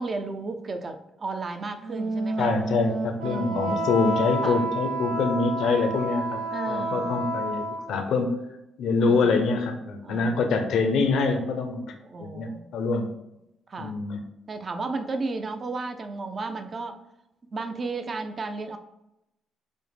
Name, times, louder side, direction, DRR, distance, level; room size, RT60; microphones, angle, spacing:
voice 1, 0.0-2.5 3.2-3.9 4.4-4.7 6.5-7.2 9.0-9.4 10.0-10.4 12.0-12.7 13.7-13.9 14.5-17.0 17.5-18.8, right 3 dB, 40° right, 7 dB, 0.5 m, -34 dB
Wind instrument woodwind instrument, 1.8-8.0, right 2 dB, 75° right, 1.0 m, -30 dB
voice 2, 2.4-6.4 6.7-7.6 7.9-8.4 8.8-11.9 12.2-13.1 13.8-14.2, left 4 dB, 75° left, 5 dB, 0.5 m, -25 dB
5.1 x 2.1 x 3.3 m, 0.89 s
cardioid pair, 90°, 0 cm